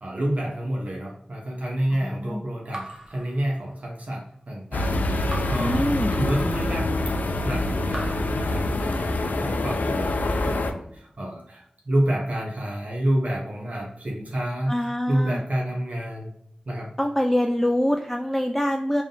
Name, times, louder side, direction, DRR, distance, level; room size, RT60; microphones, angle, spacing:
voice 1, 0.0-6.9 7.4-14.7 15.1-16.3 16.7-16.9, right 1 dB, 60° right, -2 dB, 0.8 m, -29 dB
voice 2, 2.0-2.4 5.6-6.1 14.7-15.4 17.0-19.0, equal, 5° left, 3 dB, 0.3 m, -24 dB
Raindrop / Drip, 2.7-4.1 5.3-6.7 7.9-9.3, right 1 dB, 20° right, 0.8 m, -41 dB
sound 1, 4.7-10.7, left 2 dB, 85° left, 0.4 m, -25 dB
3.6 x 2.6 x 3.7 m, 0.69 s
wide cardioid pair, 50°, 3 cm